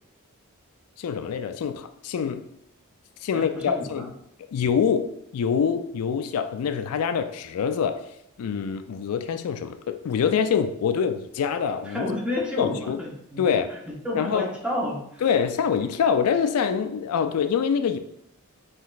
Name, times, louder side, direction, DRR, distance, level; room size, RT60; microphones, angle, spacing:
voice 1, 1.0-2.4 3.2-4.1 4.5-8.1 8.4-12.1 12.6-13.0 13.4-13.7 14.1-14.5 15.2-18.0, left 7 dB, 80° left, 8 dB, 0.3 m, -25 dB
voice 2, 3.3-4.1 11.8-13.4 13.7-15.3, left 1 dB, 5° right, -3 dB, 0.9 m, -31 dB
5.7 x 3.1 x 2.4 m, 0.78 s
head